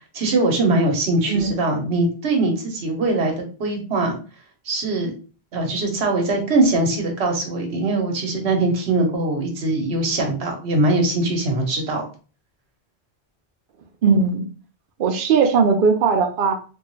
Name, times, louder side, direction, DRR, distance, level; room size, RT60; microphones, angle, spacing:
voice 1, 0.1-4.2 4.7-5.1 5.5-12.1, right 2 dB, 90° right, 2 dB, 1.2 m, -21 dB
voice 2, 14.0-14.4 15.0-16.5, right 5 dB, 60° right, 4 dB, 0.7 m, -18 dB
3.4 x 2.3 x 3.0 m, 0.36 s
omnidirectional pair, 1.1 m